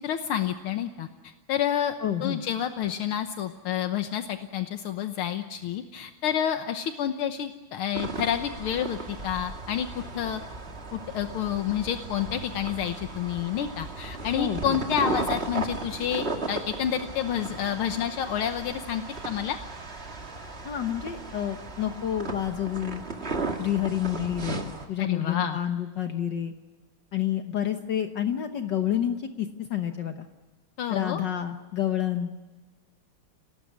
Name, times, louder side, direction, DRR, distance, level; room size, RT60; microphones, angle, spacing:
voice 1, 0.0-1.9 2.2-9.9 10.1-10.4 10.9-19.6 25.0-25.6 30.8-31.2, left 9 dB, 80° left, 7 dB, 1.9 m, -29 dB
voice 2, 2.0-2.4 14.4-14.8 20.6-23.0 23.6-26.5 27.1-30.3 30.9-32.3, left 10 dB, 60° left, 6 dB, 1.7 m, -29 dB
sound 1, 7.9-24.9, right 3 dB, 30° right, 2.2 m, -36 dB
28.5 x 19.0 x 9.5 m, 1.3 s
omnidirectional pair, 2.3 m